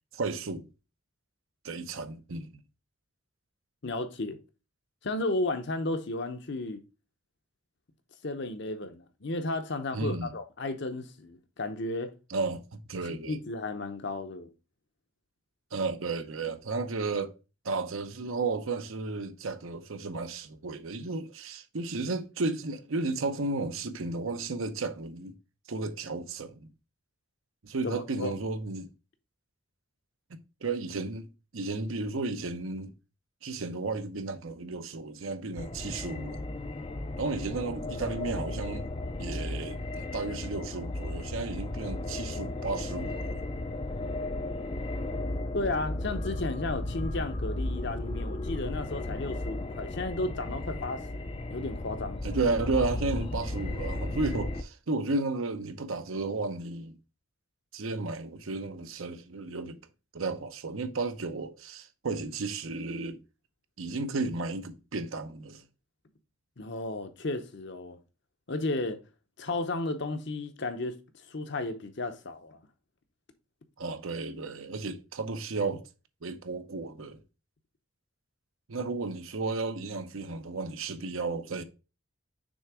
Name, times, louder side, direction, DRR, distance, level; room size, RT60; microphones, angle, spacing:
voice 1, 0.1-0.7 1.6-2.5 9.9-10.3 12.3-13.4 15.7-17.3 17.6-25.4 25.7-26.7 27.6-28.9 30.3-31.3 31.5-32.9 33.4-36.5 37.2-38.9 39.2-43.4 52.2-57.0 57.7-59.8 60.1-63.2 63.8-65.6 73.8-75.9 76.2-77.2 78.7-81.6, right 3 dB, 75° right, 0.8 m, -33 dB
voice 2, 3.8-4.4 5.0-6.8 8.2-12.1 13.1-14.5 27.8-28.4 45.5-52.3 66.6-68.0 68.5-69.0 69.4-71.0 71.3-72.6, left 2 dB, 55° left, 0.8 m, -33 dB
sound 1, 35.6-54.6, left 2 dB, 25° left, 0.4 m, -35 dB
6.4 x 3.3 x 4.7 m
head